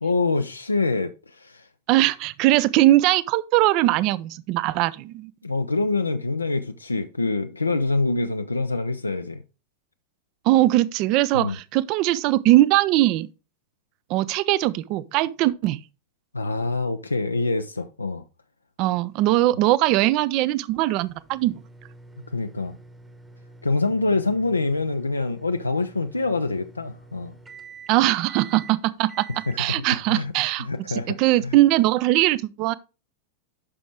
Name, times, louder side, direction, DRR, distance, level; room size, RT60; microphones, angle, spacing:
voice 1, 0.0-1.7 5.4-9.4 11.3-11.6 16.3-18.2 22.3-22.8 23.6-27.3 29.5-29.8 30.1-31.2 31.4-31.6, left 3 dB, 80° left, 0.5 m, -25 dB
voice 2, 1.9-5.3 10.5-13.3 14.1-15.8 18.8-21.6 27.9-29.3 29.6-32.7, right 16 dB, 40° right, 0.5 m, -21 dB
sound 1, 21.0-31.3, right 4 dB, 15° right, 1.1 m, -47 dB
9.8 x 6.0 x 3.4 m
figure-of-eight pair, 90°, 0 cm